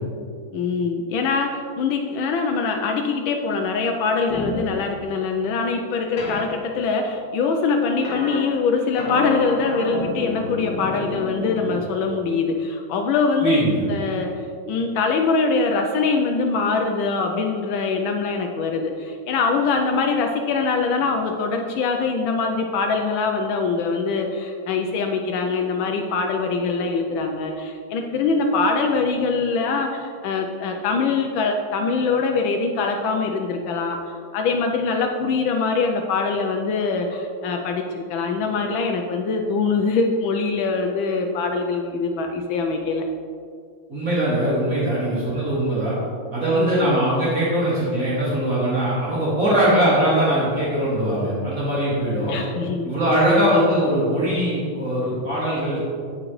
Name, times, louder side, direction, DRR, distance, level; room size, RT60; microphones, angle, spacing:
voice 1, 0.5-14.3 14.7-43.1 46.5-46.9 52.3-52.9 53.3-53.6, left 4 dB, 85° left, 3 dB, 1.4 m, -23 dB
sound 1, 4.3-4.7 6.2-6.4 8.0-8.4 9.0-11.8, left 1 dB, 60° left, 1.5 m, -29 dB
voice 2, 13.4-13.8 43.9-45.9 46.3-52.4 52.8-55.9, right 1 dB, 45° right, -9 dB, 2.5 m, -21 dB
14.5 x 5.1 x 3.1 m, 2.3 s
omnidirectional pair, 2.1 m